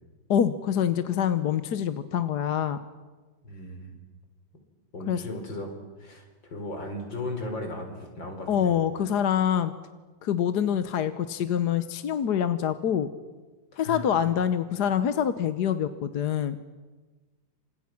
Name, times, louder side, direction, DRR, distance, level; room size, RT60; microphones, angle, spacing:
voice 1, 0.3-2.8 5.1-5.2 8.5-9.7 10.2-13.1 13.8-16.6, left 9 dB, 65° left, 11 dB, 1.5 m, -25 dB
voice 2, 3.4-3.9 4.9-5.7 6.0-8.7 13.7-14.2, left 2 dB, 80° left, 4 dB, 5.0 m, -36 dB
29.5 x 26.5 x 6.0 m, 1.3 s
omnidirectional pair, 2.0 m